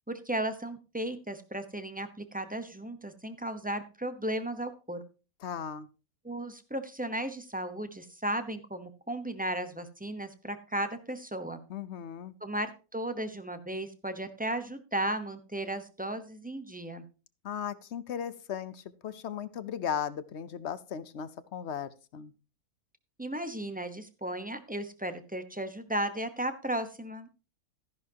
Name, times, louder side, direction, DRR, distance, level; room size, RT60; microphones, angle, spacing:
voice 1, 0.1-5.0 6.2-11.6 12.4-17.0 23.2-27.3, right 1 dB, 10° right, 9 dB, 0.7 m, -35 dB
voice 2, 5.4-5.9 11.7-12.3 17.4-22.3, left 8 dB, 55° left, 15 dB, 0.9 m, -37 dB
13.5 x 11.0 x 2.8 m, 0.33 s
omnidirectional pair, 1.5 m